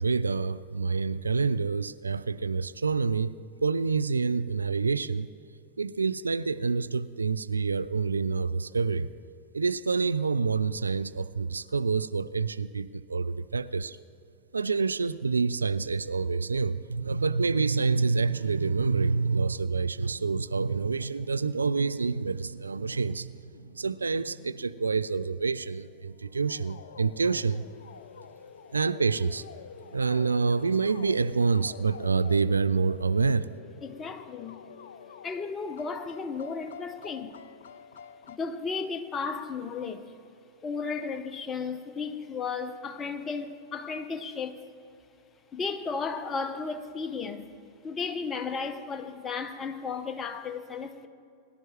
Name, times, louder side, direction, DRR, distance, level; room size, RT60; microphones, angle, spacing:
voice 1, 0.0-5.3 5.8-9.1 9.5-14.0 14.5-27.6 28.7-29.4 29.9-33.5, right 4 dB, 75° right, 0.3 m, -27 dB
sound 1, 22.9-38.4, left 7 dB, 60° left, 0.5 m, -48 dB
voice 2, 33.8-34.6 35.2-37.4 38.3-40.1 40.6-44.6 45.5-47.5 47.8-51.1, left 5 dB, 20° left, 0.9 m, -34 dB
21.5 x 11.0 x 3.1 m
figure-of-eight pair, 90°, 0 cm